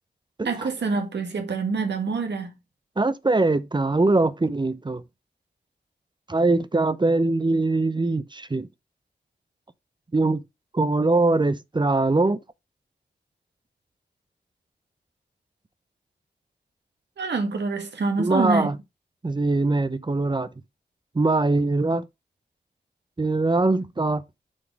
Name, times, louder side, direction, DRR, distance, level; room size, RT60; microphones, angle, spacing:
voice 1, 0.4-2.5 17.2-18.7, right 4 dB, 80° right, 1.5 m, -26 dB
voice 2, 3.0-5.0 6.3-8.7 10.1-10.4 10.7-12.4 18.2-18.8 19.2-20.5 21.1-22.1 23.2-24.2, right 2 dB, 25° right, 0.6 m, -22 dB
6.1 x 4.1 x 4.6 m
cardioid pair, 45°, 18 cm